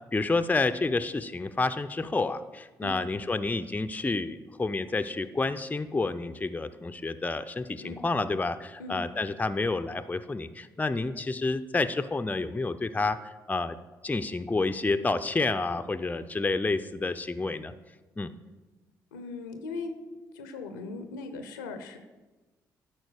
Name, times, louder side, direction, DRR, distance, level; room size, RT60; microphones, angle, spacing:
voice 1, 0.1-13.8 14.0-17.7 18.2-18.3, left 3 dB, 15° left, 10 dB, 0.5 m, -29 dB
voice 2, 19.1-19.9 20.3-22.0, left 3 dB, 85° left, 7 dB, 0.6 m, -39 dB
12.0 x 4.5 x 4.9 m, 1.2 s
hypercardioid pair, 45°, 10 cm